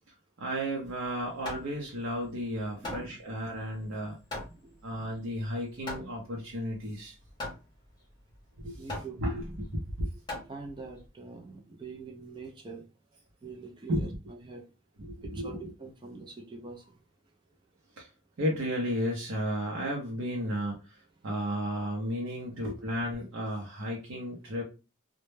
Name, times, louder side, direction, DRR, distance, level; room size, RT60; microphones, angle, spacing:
voice 1, 0.4-4.2 4.8-7.1 8.6-10.1 13.9-14.1 15.0-15.7 18.0-18.1 18.4-20.8 21.2-24.6, equal, 80° right, 0.6 m, -33 dB
Hammer, 0.9-11.1, left 2 dB, 20° left, 0.7 m, -43 dB
voice 2, 2.8-3.2 4.5-5.1 8.8-9.2 10.3-12.9 13.4-14.7 15.3-17.0 22.5-22.6, right 4 dB, 25° right, 0.4 m, -45 dB
2.1 x 2.1 x 3.0 m
head